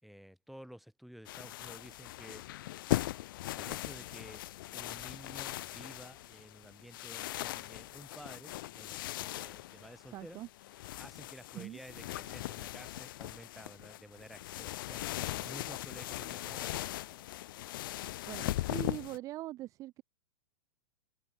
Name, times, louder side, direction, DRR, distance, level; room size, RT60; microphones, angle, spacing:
voice 1, 0.0-2.5 3.3-4.4 4.7-10.4 11.0-17.2, equal, ahead, 5.7 m, -52 dB
sound 1, 1.3-19.2, left 16 dB, 50° left, 2.8 m, -39 dB
voice 2, 10.1-10.5 11.5-11.8 18.3-20.0, right 16 dB, 20° right, 1.9 m, -42 dB
supercardioid pair, 165°, 15 cm